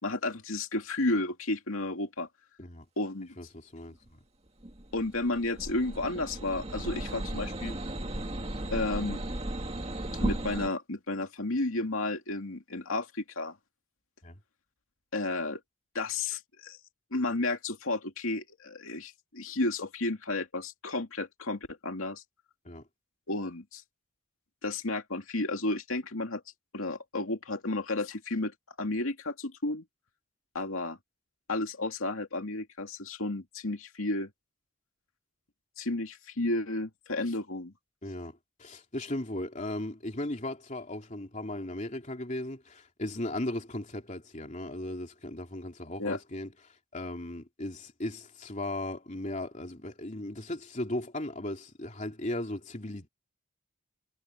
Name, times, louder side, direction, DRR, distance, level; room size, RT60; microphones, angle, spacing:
voice 1, 0.0-2.3 3.0-3.3 4.9-7.8 8.7-9.2 10.1-13.5 15.1-15.6 15.9-16.8 17.1-22.2 23.3-23.8 24.6-26.4 26.7-29.8 30.5-31.0 31.5-34.3 35.8-37.7 46.0-46.2, left 2 dB, 80° left, 2.5 m, -32 dB
voice 2, 3.4-4.2 14.2-14.4 22.6-22.8 38.0-46.5 46.9-53.1, left 1 dB, 35° left, 3.1 m, -37 dB
sound 1, 4.6-10.7, right 1 dB, 30° right, 2.0 m, -35 dB
head